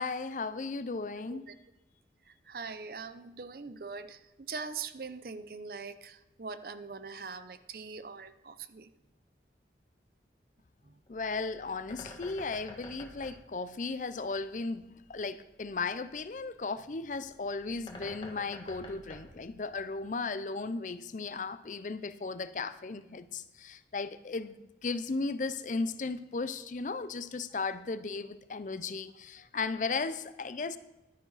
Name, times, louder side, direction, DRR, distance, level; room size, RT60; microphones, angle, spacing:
voice 1, 0.0-1.5 11.1-24.5 24.8-30.8, left 4 dB, 45° left, 14 dB, 0.5 m, -36 dB
voice 2, 2.3-8.9 10.8-11.0, right 5 dB, 55° right, 12 dB, 0.6 m, -42 dB
Bird, 11.1-20.2, left 1 dB, 30° left, 1.5 m, -50 dB
11.5 x 9.9 x 4.0 m, 1.0 s
head